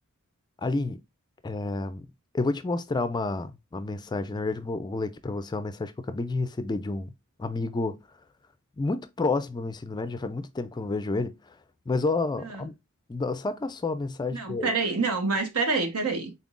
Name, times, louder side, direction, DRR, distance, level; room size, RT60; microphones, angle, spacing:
voice 1, 0.6-1.0 1.4-2.1 2.3-7.1 7.4-8.0 8.8-11.6 11.9-12.7 13.1-14.7, left 3 dB, 20° left, 0.3 m, -30 dB
voice 2, 14.3-16.3, right 4 dB, 80° right, 1.1 m, -27 dB
4.2 x 3.7 x 2.4 m
head